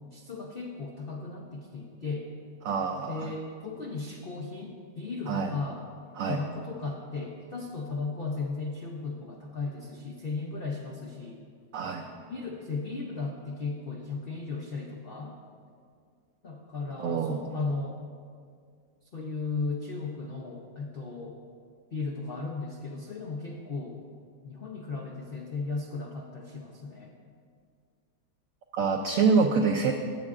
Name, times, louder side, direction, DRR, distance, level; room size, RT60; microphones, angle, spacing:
voice 1, 0.1-2.3 3.1-5.8 6.3-11.4 12.3-15.4 16.4-18.0 19.1-21.4 21.9-24.0 24.4-27.2, left 3 dB, 75° left, 0 dB, 0.5 m, -36 dB
voice 2, 2.6-3.3 5.3-5.5 6.2-6.4 11.7-12.1 17.0-17.4 28.7-29.9, right 5 dB, 80° right, 4 dB, 0.7 m, -26 dB
16.0 x 7.4 x 2.4 m, 2.2 s
omnidirectional pair, 2.0 m